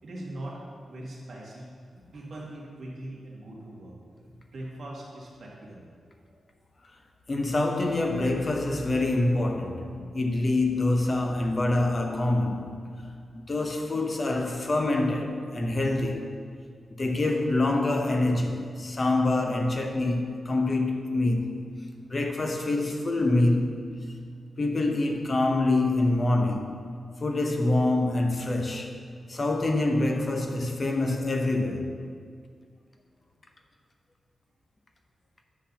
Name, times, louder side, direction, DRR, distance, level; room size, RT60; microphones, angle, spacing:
voice 1, 0.0-1.7 2.1-4.0 4.5-5.8, right 1 dB, 45° right, 2.0 m, -41 dB
voice 2, 7.3-12.8 13.3-16.3 16.9-21.7 22.1-23.8 24.6-26.8 27.2-29.0 29.3-32.0, left 2 dB, 30° left, 0.8 m, -26 dB
10.0 x 4.0 x 7.2 m
wide cardioid pair, 170°, 0 cm